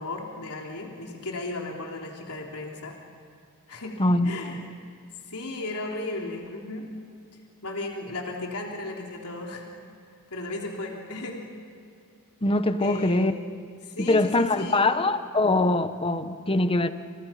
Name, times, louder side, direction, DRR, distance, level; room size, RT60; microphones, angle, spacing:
voice 1, 0.0-3.0 3.7-4.0 4.2-4.6 5.3-6.9 7.6-9.7 10.3-11.4 12.8-13.4 13.8-14.9, left 2 dB, 85° left, 3.5 m, -35 dB
voice 2, 4.0-4.7 12.4-13.3 14.0-16.9, left 2 dB, 25° left, 1.2 m, -23 dB
29.5 x 29.5 x 5.9 m
head